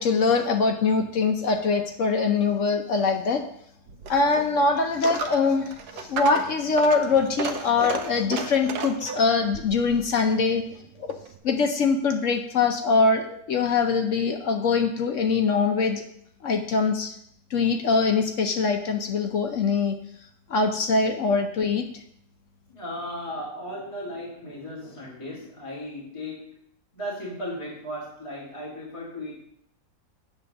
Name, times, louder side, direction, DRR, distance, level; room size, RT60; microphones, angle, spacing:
voice 1, 0.0-3.4 4.1-10.6 11.0-11.1 11.4-16.0 16.4-17.1 17.5-20.0 20.5-22.0, left 4 dB, 60° left, 5 dB, 0.9 m, -23 dB
Coin (dropping), 3.9-11.4, right 5 dB, 80° right, 1.2 m, -35 dB
voice 2, 22.7-26.5 26.9-29.4, equal, 20° left, -5 dB, 2.0 m, -36 dB
8.6 x 3.7 x 6.5 m, 0.70 s
omnidirectional pair, 1.7 m